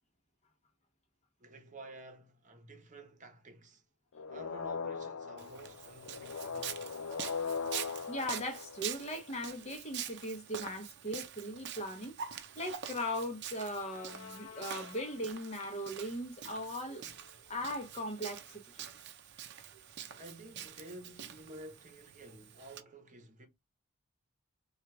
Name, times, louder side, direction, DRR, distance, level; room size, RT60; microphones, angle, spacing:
voice 1, 1.4-3.8 4.3-6.9 19.8-23.5, right 1 dB, 35° right, 0.9 m, -52 dB
sound 1, 4.1-9.5 13.8-15.5, left 5 dB, 75° left, 0.6 m, -41 dB
Walk footsteps, 5.4-22.8, right 9 dB, 50° right, 0.6 m, -46 dB
voice 2, 8.1-12.1 12.6-17.0 17.5-18.6, equal, 30° left, 0.9 m, -38 dB
4.5 x 2.4 x 4.7 m
head